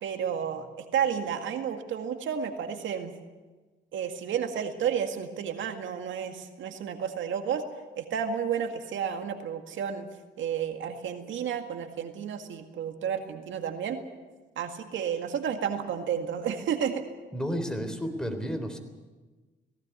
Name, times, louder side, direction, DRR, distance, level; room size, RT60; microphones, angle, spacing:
voice 1, 0.0-3.1 3.9-7.6 8.0-10.1 10.4-14.0 14.6-17.1, right 8 dB, 75° right, 6 dB, 2.0 m, -31 dB
voice 2, 17.3-18.8, equal, 5° left, 6 dB, 3.8 m, -31 dB
18.5 x 17.0 x 9.5 m, 1.3 s
cardioid pair, 90°, 20 cm